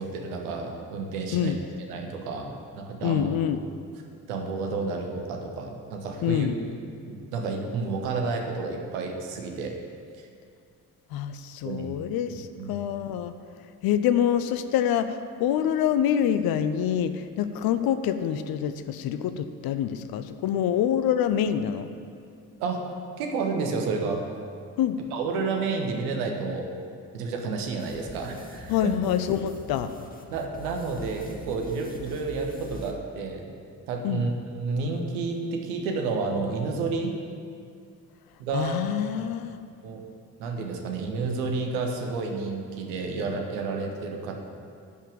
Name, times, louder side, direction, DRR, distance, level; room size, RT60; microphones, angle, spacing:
voice 1, 0.0-1.6 1.9-3.3 4.3-6.5 7.0-9.8 10.2-10.3 11.6-11.9 12.6-12.8 22.6-22.9 23.2-24.2 25.1-26.7 27.1-28.9 30.3-33.5 33.9-37.2 38.4-38.8 39.2-39.3 39.8-40.0 40.4-44.3, right 4 dB, 70° right, 2 dB, 1.3 m, -30 dB
voice 2, 3.0-3.6 6.2-6.6 11.1-13.3 13.8-21.9 24.8-25.0 28.7-29.9 34.0-34.3 38.5-39.6, left 9 dB, 55° left, 11 dB, 0.7 m, -26 dB
sound 1, 27.8-32.9, left 1 dB, 20° left, 1.7 m, -44 dB
11.0 x 5.8 x 8.7 m, 2.3 s
figure-of-eight pair, 40°, 45 cm